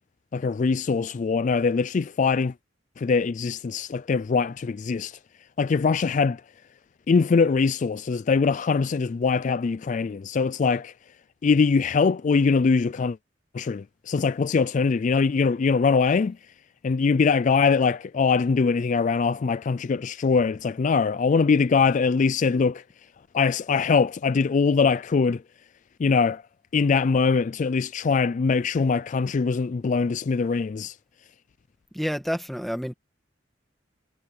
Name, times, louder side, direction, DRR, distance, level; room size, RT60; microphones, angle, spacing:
voice 1, 0.3-2.5 3.0-5.2 5.6-6.4 7.1-10.9 11.4-13.2 13.5-16.4 16.8-22.8 23.3-25.4 26.0-26.4 26.7-31.0, left 5 dB, 40° left, 0.3 m, -22 dB
voice 2, 31.9-32.9, equal, ahead, 1.9 m, -29 dB
head